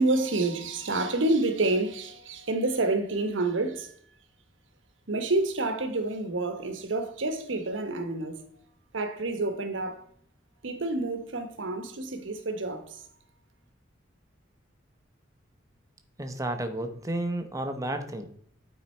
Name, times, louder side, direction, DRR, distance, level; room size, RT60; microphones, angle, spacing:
voice 1, 0.0-3.9 5.1-8.4 8.9-10.0 10.6-13.0, right 2 dB, 75° right, 1.0 m, -28 dB
voice 2, 16.2-18.3, right 1 dB, 15° right, 0.8 m, -32 dB
9.1 x 4.0 x 4.3 m
head